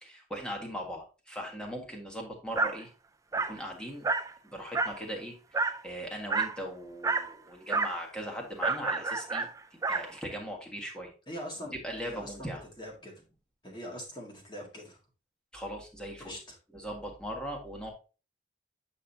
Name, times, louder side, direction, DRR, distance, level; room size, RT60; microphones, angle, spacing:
voice 1, 0.0-2.9 3.5-4.1 4.4-9.5 9.9-11.1 11.8-12.6 15.5-16.3 16.7-17.9, equal, 5° left, 0 dB, 1.6 m, -39 dB
Dog, 2.6-2.8 3.3-3.6 4.0-4.3 4.7-5.0 5.5-5.8 6.3-6.6 7.0-7.3 7.7-8.0 8.6-10.1, right 3 dB, 15° right, 0.3 m, -29 dB
voice 2, 11.3-13.1 13.6-15.0 16.2-16.6, equal, 25° left, 0 dB, 1.9 m, -43 dB
8.4 x 5.5 x 2.7 m, 0.33 s
head